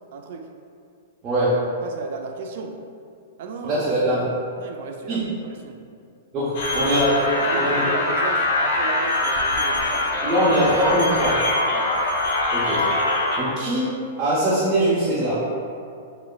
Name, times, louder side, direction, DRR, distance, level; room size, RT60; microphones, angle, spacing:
voice 1, 0.1-0.5 1.8-2.8 3.4-3.8 4.6-5.8 7.5-10.3 11.7-11.9, right 4 dB, 60° right, 4 dB, 0.4 m, -34 dB
voice 2, 1.2-1.6 3.6-4.2 5.1-5.2 6.3-7.8 10.2-11.4 12.5-12.8 13.4-15.3, right 1 dB, 30° right, -9 dB, 0.7 m, -22 dB
sound 1, 6.5-13.4, left 2 dB, 60° left, 0.7 m, -23 dB
6.1 x 2.1 x 2.2 m, 2.4 s
hypercardioid pair, 120°, 0 cm